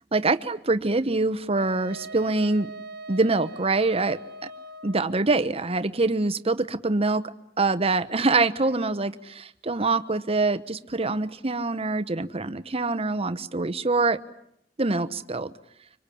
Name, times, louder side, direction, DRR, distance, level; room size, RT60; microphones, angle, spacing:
voice 1, 0.1-2.7 3.1-4.2 4.8-7.2 7.6-14.2 14.8-15.5, right 3 dB, 35° right, 12 dB, 1.0 m, -24 dB
Wind instrument woodwind instrument, 1.6-5.1, right 1 dB, 60° right, 1.4 m, -41 dB
25.0 x 25.0 x 8.6 m, 0.75 s
head